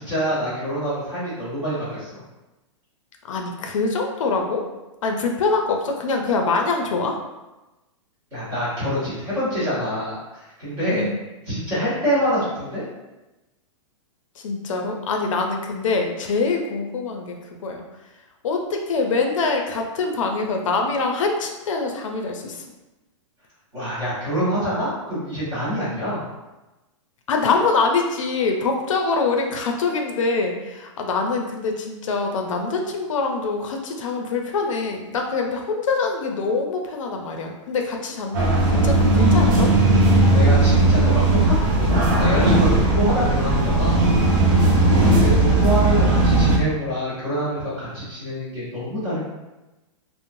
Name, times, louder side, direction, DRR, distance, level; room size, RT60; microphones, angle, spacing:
voice 1, 0.0-2.2 8.3-11.0 11.5-12.8 23.7-26.2 40.3-44.1 45.1-49.2, equal, 20° right, -11 dB, 1.4 m, -26 dB
voice 2, 3.2-4.6 5.0-7.2 10.9-11.2 14.4-17.8 18.4-22.7 27.3-39.7 42.8-42.9 44.5-45.1, left 4 dB, 80° left, 3 dB, 0.5 m, -24 dB
sound 1, 38.3-46.6, right 2 dB, 40° right, 0.5 m, -17 dB
3.0 x 2.0 x 2.5 m, 1.0 s
hypercardioid pair, 175°, 16 cm